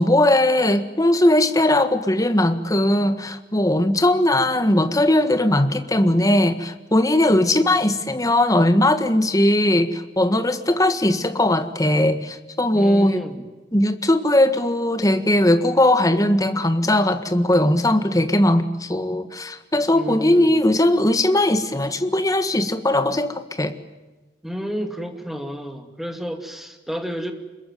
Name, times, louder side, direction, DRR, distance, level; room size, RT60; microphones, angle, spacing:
voice 1, 0.0-13.2 13.7-23.8, left 1 dB, 20° left, 9 dB, 1.6 m, -19 dB
voice 2, 7.4-7.8 12.7-13.4 19.9-20.6 24.4-27.3, equal, ahead, 5 dB, 2.5 m, -31 dB
26.0 x 22.0 x 9.4 m, 1.2 s
head